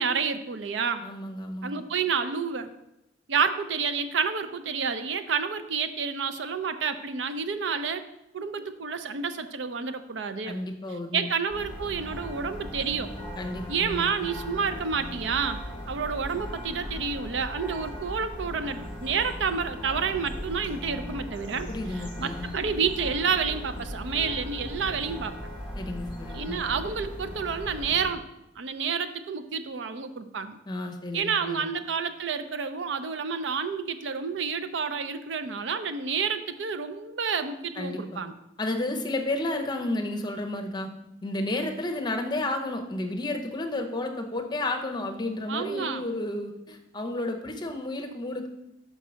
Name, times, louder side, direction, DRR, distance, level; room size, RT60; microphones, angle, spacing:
voice 1, 0.0-1.1 1.6-2.7 3.3-8.0 8.3-10.6 11.1-13.1 13.7-21.7 21.9-25.4 26.3-28.2 28.6-30.6 31.1-38.3 45.5-46.1, right 6 dB, 75° right, 11 dB, 0.5 m, -29 dB
voice 2, 1.0-1.8 10.4-11.3 13.4-14.0 21.7-22.5 25.8-26.6 30.7-31.6 37.8-38.2 38.6-40.9 41.2-48.5, left 2 dB, 25° left, 3 dB, 0.7 m, -32 dB
sound 1, 11.5-28.1, equal, 5° right, 2.0 m, -38 dB
5.4 x 4.6 x 6.2 m, 0.88 s
head